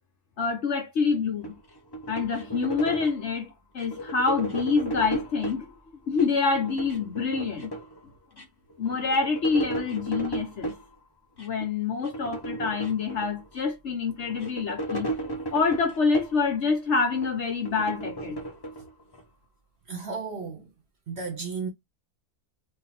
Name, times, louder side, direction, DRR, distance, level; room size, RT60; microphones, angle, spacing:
voice 1, 0.4-1.5 2.1-3.5 3.7-7.7 8.8-10.7 11.4-15.1 15.5-18.4, left 5 dB, 55° left, 1.0 m, -26 dB
sound 1, 1.4-3.3 3.8-5.6 6.1-8.0 8.4-8.5 8.7-10.8 11.4-11.7 12.0-13.6 14.1-16.5 16.9-19.2, right 2 dB, 25° left, 0.6 m, -35 dB
voice 2, 19.9-20.7 21.1-21.7, right 5 dB, 50° right, 0.9 m, -34 dB
2.9 x 2.5 x 4.1 m
omnidirectional pair, 1.6 m